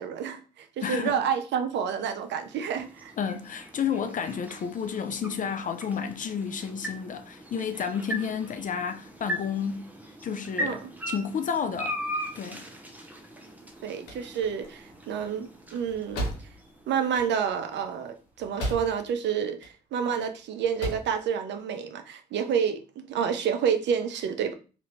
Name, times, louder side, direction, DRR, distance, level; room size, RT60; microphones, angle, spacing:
voice 1, 0.0-3.1 10.6-10.9 13.8-16.2 16.9-24.5, right 7 dB, 60° right, 0.5 m, -29 dB
voice 2, 0.8-1.2 3.2-9.9 10.2-10.8 11.1-12.0 12.4-12.7, left 7 dB, 40° left, 0.5 m, -31 dB
sound 1, 1.7-17.9, equal, 10° right, 0.7 m, -40 dB
sound 2, 13.6-19.2 19.5-20.2 20.6-21.2, right 1 dB, 80° left, 0.9 m, -36 dB
2.7 x 2.5 x 3.1 m
hypercardioid pair, 50°, 21 cm